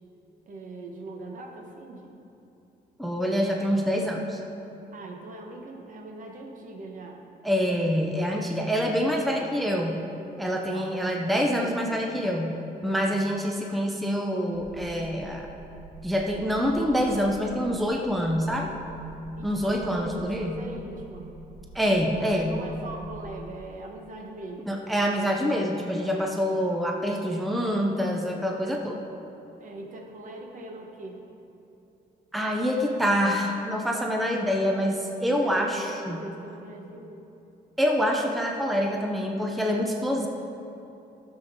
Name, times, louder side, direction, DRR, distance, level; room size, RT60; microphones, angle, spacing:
voice 1, 0.5-2.2 4.9-7.2 10.7-11.3 19.4-21.3 22.1-24.7 29.6-31.2 35.3-37.3 40.2-40.3, right 2 dB, 50° right, 2 dB, 1.1 m, -41 dB
voice 2, 3.0-4.4 7.4-10.1 10.4-15.5 16.0-18.7 19.4-20.6 21.7-22.7 24.7-29.0 32.3-36.2 37.8-40.3, equal, ahead, 1 dB, 0.5 m, -26 dB
sound 1, 14.5-23.4, right 3 dB, 90° right, 1.2 m, -47 dB
15.0 x 6.9 x 3.6 m, 2.8 s
wide cardioid pair, 170°, 17 cm